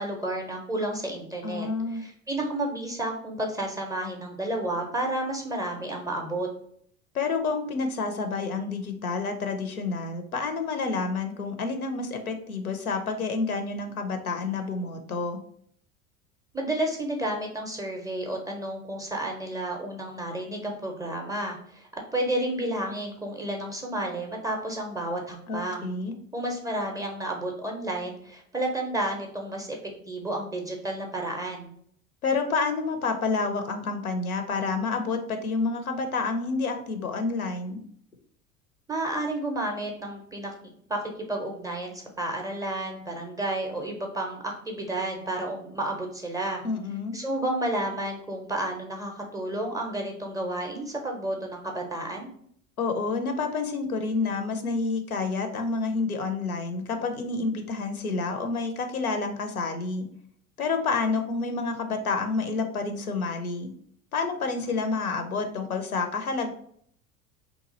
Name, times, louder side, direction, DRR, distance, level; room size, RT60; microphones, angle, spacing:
voice 1, 0.0-6.5 16.5-25.9 26.3-29.8 30.1-31.7 38.9-40.5 40.9-46.6 47.1-52.3, right 1 dB, 10° right, 1 dB, 0.5 m, -31 dB
voice 2, 1.4-2.0 7.1-15.4 25.5-26.1 32.2-37.8 46.6-47.2 52.8-60.1 60.6-63.7 64.1-66.5, left 4 dB, 85° left, 6 dB, 0.6 m, -29 dB
2.9 x 2.3 x 3.9 m, 0.64 s
figure-of-eight pair, 70°, 42 cm